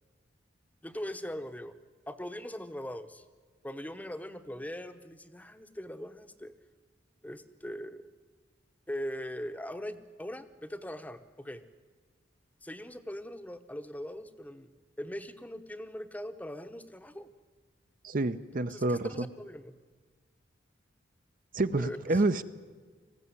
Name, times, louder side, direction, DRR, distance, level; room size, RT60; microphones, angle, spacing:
voice 1, 0.8-1.7 2.1-3.2 3.6-6.5 7.2-8.0 8.9-11.6 12.6-14.7 15.0-17.3 18.6-19.8 21.8-22.2, equal, 10° left, 10 dB, 0.9 m, -41 dB
voice 2, 18.0-19.1 21.5-22.4, right 2 dB, 45° right, 11 dB, 0.7 m, -28 dB
20.0 x 15.0 x 9.6 m, 1.5 s
head